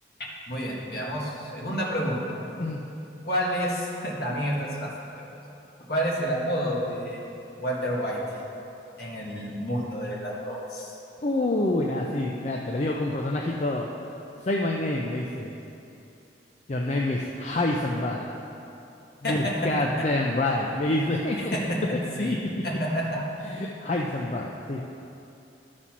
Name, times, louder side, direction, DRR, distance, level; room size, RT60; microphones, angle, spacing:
voice 1, 0.5-2.4 3.2-4.9 5.2-5.3 5.9-7.2 7.6-8.2 9.0-10.9 19.2-19.7 21.4-21.8 22.2-22.4 22.6-23.3, equal, 55° left, -4 dB, 1.8 m, -29 dB
voice 2, 11.2-13.9 14.4-15.5 16.7-18.3 19.2-21.6 22.2-22.6 23.4-24.8, left 1 dB, 35° left, -1 dB, 0.5 m, -27 dB
12.0 x 4.2 x 6.0 m, 2.8 s
head